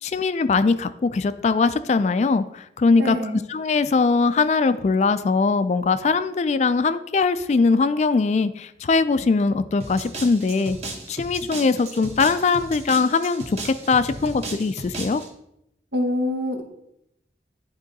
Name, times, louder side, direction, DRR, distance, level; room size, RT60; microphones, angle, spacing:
voice 1, 0.0-3.2 3.5-10.8 11.1-15.2, left 4 dB, 40° left, 12 dB, 0.3 m, -21 dB
voice 2, 3.0-3.4 15.9-16.6, left 1 dB, 75° right, 4 dB, 1.1 m, -25 dB
sound 1, 9.8-15.3, right 2 dB, 35° right, 1.1 m, -36 dB
10.5 x 3.7 x 4.0 m, 0.79 s
head